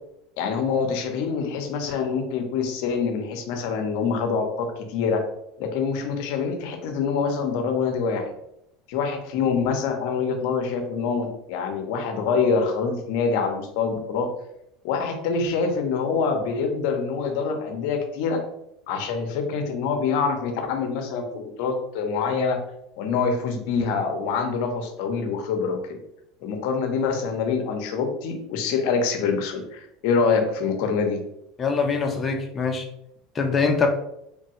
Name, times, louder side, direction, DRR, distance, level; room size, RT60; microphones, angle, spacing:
voice 1, 0.4-5.2 5.6-8.3 8.9-14.3 14.8-18.4 18.9-22.6 23.0-26.0 26.4-31.2, left 5 dB, 70° left, 5 dB, 0.6 m, -25 dB
voice 2, 31.6-32.8 33.4-33.9, left 5 dB, 30° left, 3 dB, 0.6 m, -23 dB
3.2 x 2.2 x 2.8 m, 0.78 s
supercardioid pair, 105°, 0 cm